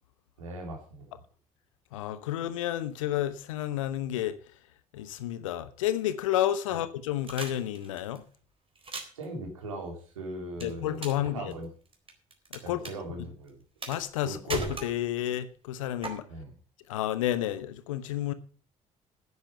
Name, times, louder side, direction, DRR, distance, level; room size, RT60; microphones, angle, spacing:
voice 1, 0.4-1.1 6.7-6.8 9.1-11.7 12.6-13.6 14.2-14.4 16.3-16.5, right 1 dB, 85° right, 3.3 m, -39 dB
voice 2, 1.9-4.4 4.9-8.2 10.6-11.5 12.5-12.8 13.9-16.3 16.9-18.3, left 12 dB, 80° left, 1.0 m, -31 dB
sound 1, 7.3-8.2 8.8-9.2 10.6-11.3 11.5-12.6 12.8-12.9 13.8-14.2 14.5-15.3 16.0-16.1, right 4 dB, 35° right, 3.9 m, -36 dB
10.0 x 9.6 x 6.7 m
figure-of-eight pair, 50°, 17 cm